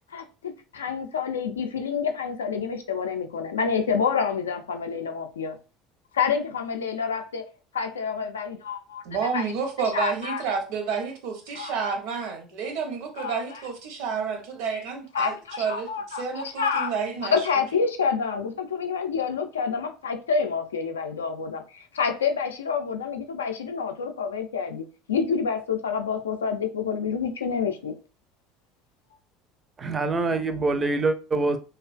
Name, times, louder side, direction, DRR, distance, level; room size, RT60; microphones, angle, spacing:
voice 1, 0.1-5.6 6.1-7.4 7.7-9.0 9.3-9.5 9.9-10.4 11.5-11.7 13.2-13.6 15.1-16.9 17.2-27.9, left 6 dB, 90° left, 0.3 m, -28 dB
voice 2, 9.0-17.4, right 5 dB, 70° right, 0.7 m, -30 dB
voice 3, 29.8-31.6, right 3 dB, 30° right, 0.4 m, -25 dB
2.5 x 2.2 x 2.4 m
hypercardioid pair, 75°, 0 cm